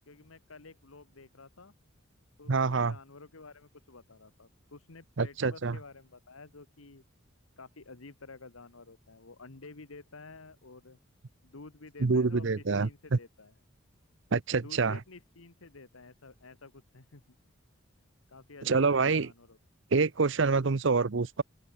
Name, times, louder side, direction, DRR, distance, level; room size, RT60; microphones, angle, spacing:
voice 1, 0.1-1.7 2.4-7.0 7.6-11.0 11.4-13.5 14.6-17.2 18.3-19.6, left 3 dB, 85° left, 1.4 m, -51 dB
voice 2, 2.5-2.9 5.2-5.8 12.0-13.2 14.3-15.0 18.6-19.3 19.9-21.4, right 4 dB, 65° right, 0.7 m, -26 dB
open air
head